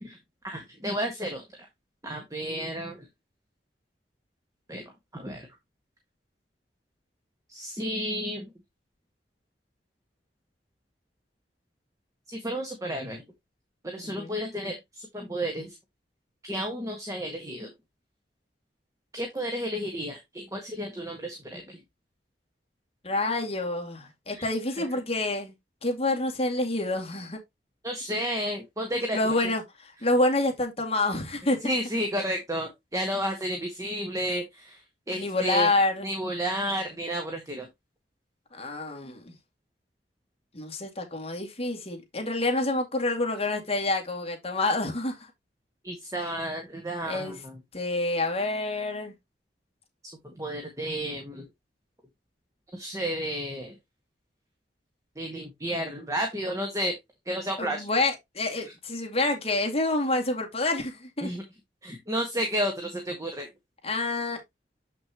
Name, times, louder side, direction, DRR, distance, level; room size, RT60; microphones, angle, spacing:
voice 1, 0.4-1.4 2.0-3.0 4.7-4.8 5.1-5.5 7.5-8.5 12.3-13.2 13.8-15.7 16.4-17.7 19.1-21.8 24.4-24.5 24.8-24.9 27.8-29.3 31.6-34.8 35.1-35.7 36.0-37.7 45.8-47.6 50.2-51.5 52.7-53.7 55.1-56.9 57.2-57.8 61.2-61.4 61.8-63.5, equal, 20° right, 1.6 m, -32 dB
voice 2, 14.0-14.4 23.0-25.5 25.8-27.4 29.1-31.6 35.1-36.1 38.5-39.3 40.5-45.3 47.0-47.4 47.7-49.1 57.6-61.3 63.8-64.4, left 2 dB, 35° left, 2.3 m, -28 dB
7.8 x 6.0 x 3.0 m
head